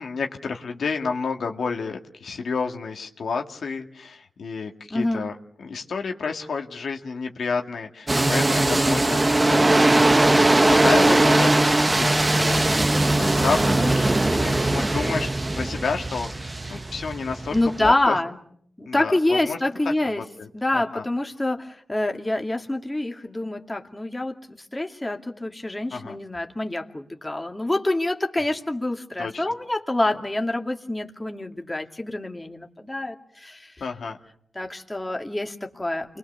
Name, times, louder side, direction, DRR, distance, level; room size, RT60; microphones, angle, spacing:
voice 1, 0.0-5.3 5.6-18.2 18.9-19.6 20.0-21.1 25.9-26.2 29.2-29.4 33.8-34.2, left 5 dB, 75° left, 3 dB, 2.1 m, -30 dB
voice 2, 4.9-5.3 17.5-18.4 18.8-20.2 20.5-33.7 34.6-36.2, left 1 dB, 15° left, 3 dB, 2.4 m, -26 dB
sound 1, 8.1-17.9, right 2 dB, 20° right, 1.0 m, -20 dB
29.5 x 22.0 x 6.8 m, 0.66 s
cardioid pair, 80°, 0 cm